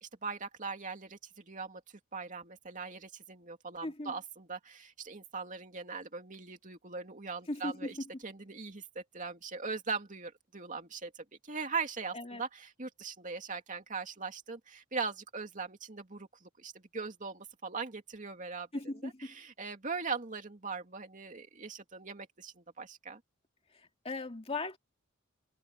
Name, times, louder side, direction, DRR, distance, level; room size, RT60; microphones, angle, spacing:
voice 1, 0.0-1.8 2.1-18.7 19.0-23.2, right 4 dB, 40° right, 2.6 m, -40 dB
voice 2, 3.8-4.1 7.5-8.0 12.1-12.4 18.7-19.1 24.0-24.8, left 2 dB, 30° left, 2.5 m, -37 dB
head